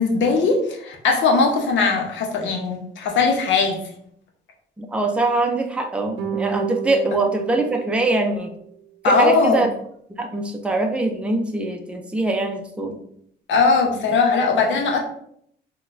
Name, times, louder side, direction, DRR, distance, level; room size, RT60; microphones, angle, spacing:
voice 1, 0.0-3.8 9.0-9.7 13.5-15.0, left 4 dB, 75° left, 2 dB, 0.7 m, -19 dB
voice 2, 4.8-8.5 9.0-9.7 10.2-13.0, right 2 dB, 5° right, 3 dB, 0.4 m, -23 dB
sound 1, 6.2-8.7, right 9 dB, 85° right, 0.5 m, -31 dB
3.8 x 2.2 x 2.5 m, 0.68 s
cardioid pair, 90°, 20 cm